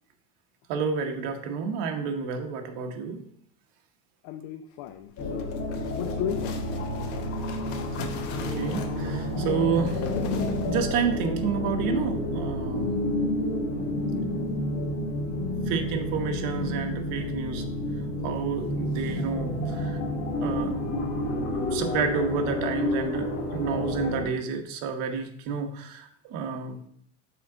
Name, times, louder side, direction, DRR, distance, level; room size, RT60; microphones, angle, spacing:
voice 1, 0.7-3.2 8.4-10.0 10.6-12.9 15.7-17.6 18.2-20.0 20.4-20.7 21.5-26.8, right 6 dB, 65° right, 4 dB, 1.1 m, -30 dB
voice 2, 4.2-5.6 5.9-6.6, left 9 dB, 50° left, 8 dB, 0.5 m, -35 dB
sound 1, 5.1-11.1, left 5 dB, 85° left, 1.1 m, -40 dB
sound 2, 5.2-24.2, left 1 dB, 35° left, 1.0 m, -30 dB
6.1 x 4.7 x 3.9 m, 0.67 s
cardioid pair, 150°, 37 cm